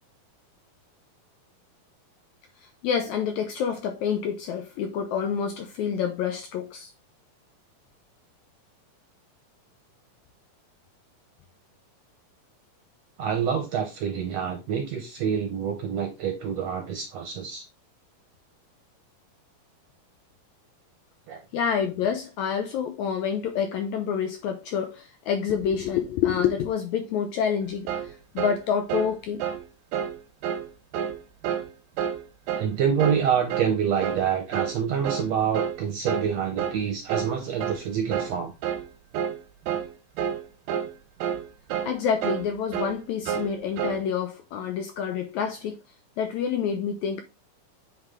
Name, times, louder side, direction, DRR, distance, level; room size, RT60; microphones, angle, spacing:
voice 1, 2.8-6.9 21.5-29.4 41.9-45.8 46.2-47.2, left 7 dB, 80° left, 1.7 m, -27 dB
voice 2, 13.2-17.6 21.3-21.4 32.6-38.5, right 7 dB, 70° right, 1.7 m, -27 dB
sound 1, 27.9-28.1 28.4-28.6 28.9-29.1 29.4-29.6 29.9-30.2 30.4-30.7 30.9-31.2 31.4-31.7 32.0-32.2 32.5-32.7 33.0-33.2 33.5-33.7 34.0-34.3 34.5-34.8 35.0-35.3 35.5-35.8 36.1-36.3 36.6-36.8 37.1-37.3 37.6-37.8 38.1-38.3 38.6-38.9 39.1-39.4 39.7-39.9 40.2-40.4 40.7-40.9 41.2-41.4 41.7-41.9 42.2-42.5 42.7-43.0 43.3-43.5 43.8-44.0, right 8 dB, 85° right, 2.6 m, -29 dB
8.1 x 3.4 x 3.6 m
omnidirectional pair, 3.9 m